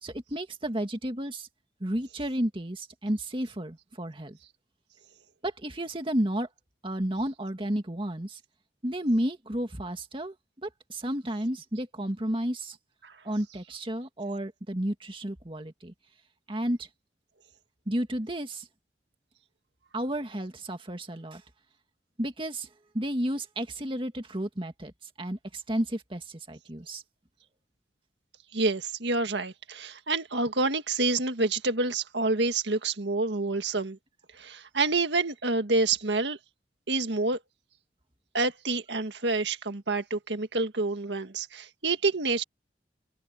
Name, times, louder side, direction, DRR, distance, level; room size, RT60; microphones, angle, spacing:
voice 1, 0.0-1.5 1.8-4.4 5.4-6.5 6.8-8.4 8.8-12.8 13.2-15.9 16.5-16.9 17.9-18.7 19.9-21.4 22.2-22.7 22.9-24.9 25.2-27.0, right 1 dB, 30° right, 2.1 m, -32 dB
voice 2, 28.5-34.0 34.3-36.4 36.9-37.4 38.3-42.4, right 3 dB, 85° right, 1.8 m, -28 dB
head